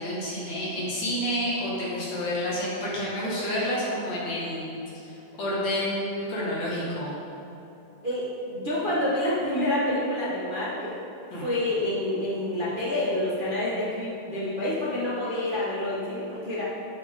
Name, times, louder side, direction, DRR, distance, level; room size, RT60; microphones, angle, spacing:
voice 1, 0.0-7.1 11.3-11.4, equal, 55° left, -7 dB, 3.1 m, -29 dB
voice 2, 8.0-11.0 11.4-16.6, left 1 dB, 80° right, -8 dB, 0.4 m, -28 dB
12.5 x 7.4 x 3.8 m, 3.0 s
omnidirectional pair, 3.9 m